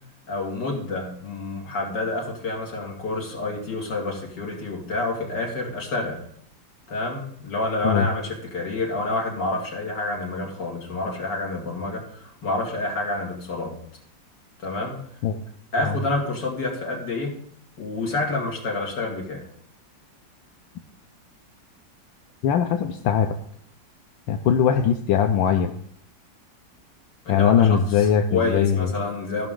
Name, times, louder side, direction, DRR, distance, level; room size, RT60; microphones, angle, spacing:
voice 1, 0.3-6.2 6.9-13.8 14.6-15.0 15.7-17.3 17.8-19.4 27.2-29.5, left 2 dB, 65° left, -1 dB, 2.8 m, -28 dB
voice 2, 22.4-23.3 24.3-25.7 27.3-28.9, left 8 dB, 85° left, 5 dB, 1.4 m, -20 dB
14.5 x 5.9 x 3.7 m, 0.64 s
omnidirectional pair, 2.0 m